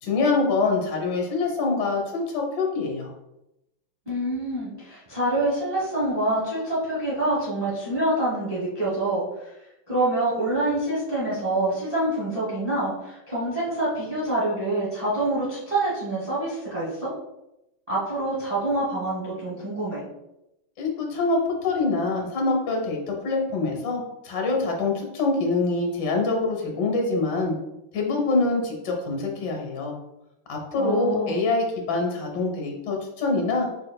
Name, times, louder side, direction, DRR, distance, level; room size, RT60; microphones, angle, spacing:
voice 1, 0.0-3.1 20.8-27.5 27.9-30.0 30.5-33.7, left 3 dB, 60° left, 1 dB, 1.6 m, -25 dB
voice 2, 4.1-9.5 9.9-17.1 17.9-20.0 30.7-31.4, right 1 dB, 20° right, -8 dB, 1.3 m, -26 dB
5.2 x 4.5 x 2.3 m, 0.88 s
omnidirectional pair, 2.2 m